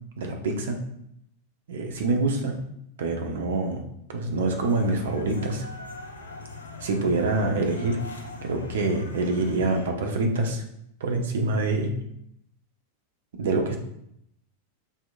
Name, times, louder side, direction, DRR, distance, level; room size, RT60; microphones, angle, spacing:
voice 1, 0.2-0.8 1.7-2.6 3.0-3.8 4.1-5.6 6.8-8.0 8.4-10.6 11.0-11.9 13.4-13.8, right 2 dB, 60° right, 3 dB, 0.9 m, -25 dB
sound 1, 4.5-9.9, left 3 dB, 70° left, 0.7 m, -41 dB
6.9 x 3.0 x 2.5 m, 0.74 s
figure-of-eight pair, 90°, 0 cm